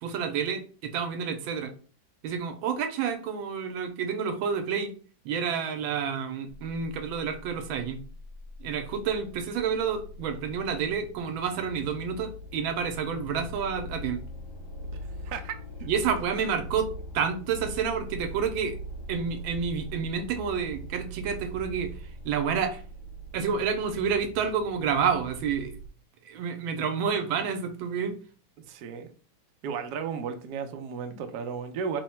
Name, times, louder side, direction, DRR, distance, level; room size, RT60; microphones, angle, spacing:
voice 1, 0.0-1.7 2.2-4.9 5.2-8.0 8.6-14.2 15.8-18.8 19.1-22.8 23.3-25.7 26.2-28.2, right 6 dB, 85° right, 1.4 m, -29 dB
sound 1, 7.4-25.9, equal, 85° left, 1.9 m, -42 dB
voice 2, 14.9-15.9 28.7-29.1 29.6-32.0, right 6 dB, 70° right, 1.0 m, -35 dB
3.8 x 2.1 x 4.2 m
omnidirectional pair, 2.2 m